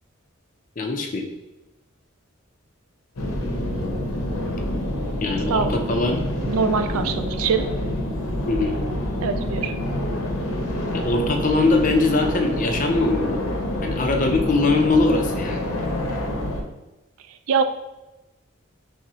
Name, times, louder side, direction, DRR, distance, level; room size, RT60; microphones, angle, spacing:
voice 1, 0.8-1.3 5.2-6.2 8.5-8.7 10.9-13.4 13.8-15.7, left 3 dB, 35° left, 3 dB, 0.4 m, -21 dB
sound 1, 3.2-16.6, left 1 dB, 80° left, 0.7 m, -27 dB
voice 2, 6.4-7.6 9.2-9.7 17.5-17.6, right 6 dB, 80° right, 9 dB, 0.4 m, -23 dB
6.0 x 2.1 x 2.8 m, 0.99 s
head